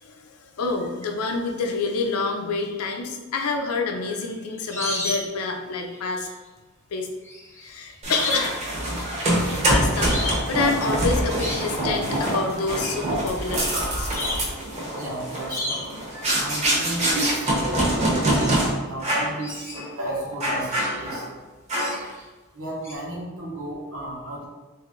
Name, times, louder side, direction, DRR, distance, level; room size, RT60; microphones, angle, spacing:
voice 1, 0.0-6.3 6.9-7.1 7.6-8.5 9.7-14.1, left 3 dB, 80° left, 3 dB, 0.5 m, -27 dB
sound 1, 3.9-5.4 5.7-6.3 7.2-8.6 8.8-9.5 10.0-10.5 11.1-11.7 12.8-13.0 13.6-13.7 14.1-14.5 15.5-16.0 17.4-17.6 17.8-19.0 19.4-21.0 21.7-22.2 22.8-22.9, left 2 dB, 10° left, 0.6 m, -32 dB
sound 2, 8.0-18.7 19.0-19.4 19.7-19.9 20.4-21.3 21.7-22.1, right 1 dB, 30° right, 0.9 m, -25 dB
voice 2, 14.6-16.0 16.4-21.4 22.5-24.5, right 1 dB, 70° right, -3 dB, 1.1 m, -34 dB
3.1 x 2.6 x 3.8 m, 1.2 s
head